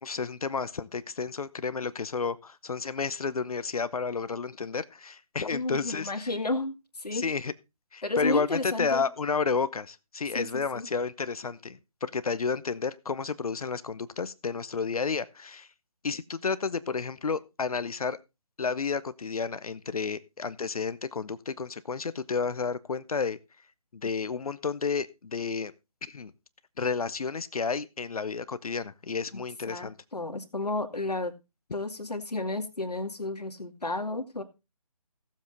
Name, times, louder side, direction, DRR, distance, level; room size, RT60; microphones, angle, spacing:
voice 1, 0.0-6.3 7.1-7.5 7.9-15.7 16.0-18.2 18.6-23.4 23.9-25.7 26.1-26.3 26.8-29.9, left 5 dB, 65° left, 14 dB, 0.8 m, -31 dB
voice 2, 5.5-7.3 8.0-9.0 10.3-10.5 10.7-10.9 29.3-29.4 29.7-31.3 31.7-34.4, left 2 dB, 90° left, 6 dB, 2.3 m, -32 dB
16.5 x 7.5 x 4.0 m, 0.26 s
figure-of-eight pair, 155°, 20 cm